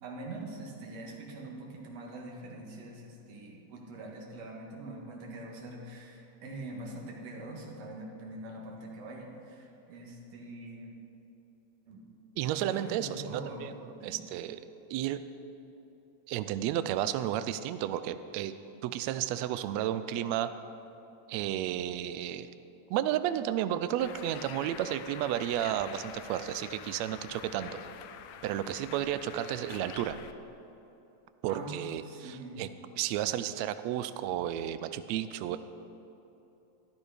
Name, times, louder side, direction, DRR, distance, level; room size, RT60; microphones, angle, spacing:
voice 1, 0.0-10.9 11.9-12.0 12.5-13.6 14.0-14.2 31.5-32.6, right 2 dB, 60° right, -1 dB, 2.8 m, -43 dB
voice 2, 12.4-14.6 14.9-15.2 16.3-18.5 18.8-20.5 21.3-22.5 22.9-27.8 28.4-30.2 31.4-32.7 33.0-35.6, right 11 dB, 90° right, 12 dB, 1.5 m, -32 dB
Bird, 24.0-30.3, left 9 dB, 75° left, 1.6 m, -46 dB
13.5 x 12.5 x 5.0 m, 2.9 s
omnidirectional pair, 3.6 m